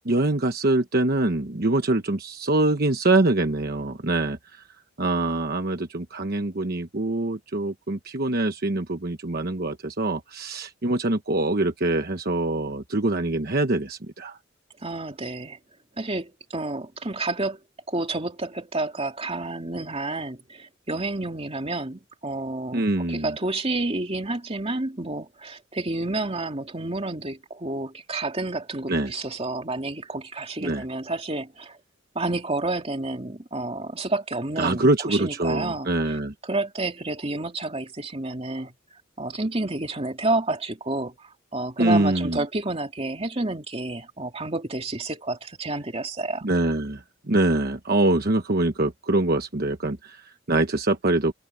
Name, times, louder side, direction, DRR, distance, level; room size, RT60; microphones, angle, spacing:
voice 1, 0.0-4.6 5.0-14.4 22.7-23.3 28.9-29.1 30.6-30.8 34.6-36.3 41.8-42.4 46.4-51.3, right 2 dB, 50° right, 1.1 m, -24 dB
voice 2, 14.8-15.6 16.0-17.6 17.9-31.8 32.1-38.7 39.2-46.4, right 2 dB, 30° right, 2.5 m, -30 dB
head